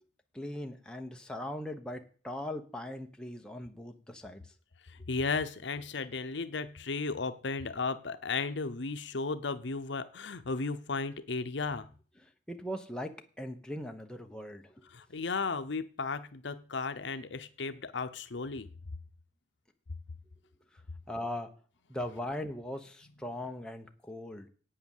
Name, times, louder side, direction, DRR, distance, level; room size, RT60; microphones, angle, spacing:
voice 1, 0.3-4.5 12.2-14.9 20.7-20.8 21.1-21.5 21.9-24.5, left 1 dB, 5° left, 3 dB, 1.0 m, -40 dB
voice 2, 4.9-11.9 14.9-18.7, left 4 dB, 70° left, 10 dB, 0.8 m, -35 dB
8.7 x 8.6 x 7.2 m, 0.42 s
head